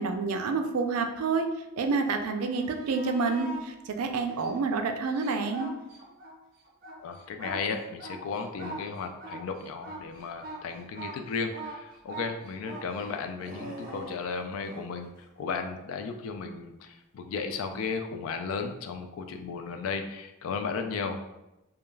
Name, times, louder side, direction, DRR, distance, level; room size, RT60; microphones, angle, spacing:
voice 1, 0.0-1.5 1.8-5.7, right 4 dB, 80° right, 5 dB, 0.4 m, -28 dB
sound 1, 2.4-3.6 4.3-6.3 6.6-14.9 17.6-17.7, right 2 dB, 40° right, 0.6 m, -42 dB
voice 2, 7.0-15.1 15.4-21.3, left 5 dB, 70° left, 6 dB, 0.3 m, -35 dB
2.3 x 2.2 x 3.1 m, 0.95 s
head